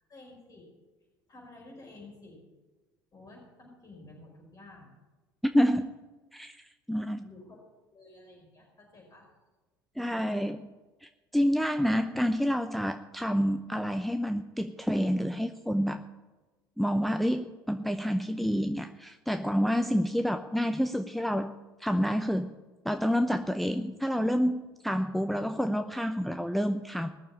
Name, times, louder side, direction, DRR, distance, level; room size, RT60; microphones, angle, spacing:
voice 1, 0.1-0.6 1.3-2.4 3.1-5.0 7.1-7.6 7.9-9.3 10.3-10.5, left 2 dB, 35° left, -2 dB, 5.4 m, -51 dB
voice 2, 5.4-6.0 6.3-7.3 10.0-10.6 11.0-16.0 16.8-21.5 21.8-22.6 22.8-27.1, equal, ahead, 7 dB, 0.7 m, -28 dB
20.5 x 7.0 x 8.6 m, 1.2 s
figure-of-eight pair, 60°, 11 cm